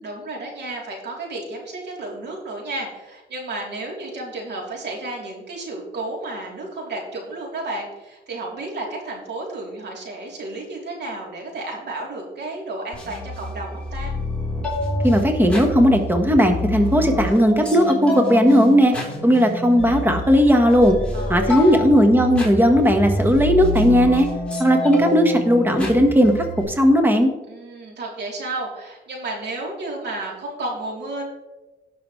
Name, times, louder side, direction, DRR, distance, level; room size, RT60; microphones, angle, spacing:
voice 1, 0.0-14.1 21.1-21.7 27.5-31.2, right 2 dB, 60° right, -1 dB, 3.4 m, -32 dB
sound 1, 12.9-26.6, left 1 dB, 5° left, 3.8 m, -27 dB
voice 2, 15.0-18.9 19.2-20.9 21.3-24.3 24.6-27.3, equal, 10° right, 5 dB, 1.4 m, -16 dB
18.0 x 6.1 x 3.2 m, 1.1 s
cardioid pair, 90°, 20 cm